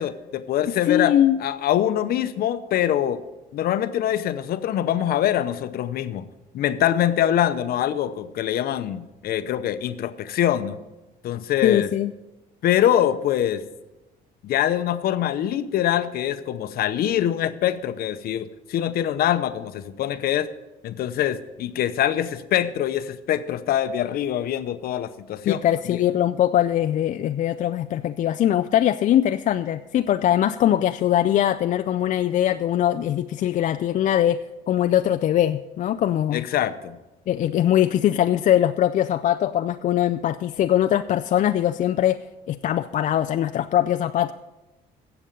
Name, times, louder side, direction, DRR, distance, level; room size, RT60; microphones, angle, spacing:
voice 1, 0.0-3.2 3.5-6.3 6.5-10.8 11.2-11.9 12.6-13.6 14.4-20.5 20.8-25.6 25.9-26.0 36.3-37.0, left 11 dB, 65° left, 12 dB, 0.7 m, -24 dB
voice 2, 0.7-1.4 11.6-12.1 25.4-34.4 34.7-36.4 37.3-42.2 42.5-44.3, left 11 dB, 50° left, 9 dB, 0.4 m, -21 dB
16.0 x 7.0 x 5.3 m, 1.0 s
cardioid pair, 110°, 17 cm